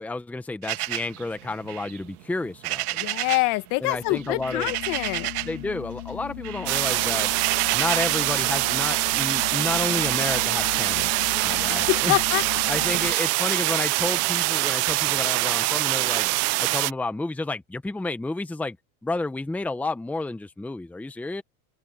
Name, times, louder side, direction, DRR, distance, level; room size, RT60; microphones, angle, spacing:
voice 1, 0.0-2.9 3.8-4.7 5.4-7.3 7.7-12.2 12.7-16.3 16.6-18.8 19.0-21.4, left 2 dB, 5° left, 1.0 m, -31 dB
sound 1, 0.6-3.6 3.8-5.7 6.0-8.3, right 17 dB, 85° right, 1.6 m, -32 dB
voice 2, 2.9-5.3 11.7-12.6, left 22 dB, 50° left, 1.5 m, -26 dB
sound 2, 3.9-13.1, left 17 dB, 90° left, 2.9 m, -38 dB
sound 3, 6.7-16.9, right 23 dB, 35° right, 0.5 m, -24 dB
open air
supercardioid pair, 140°, 44 cm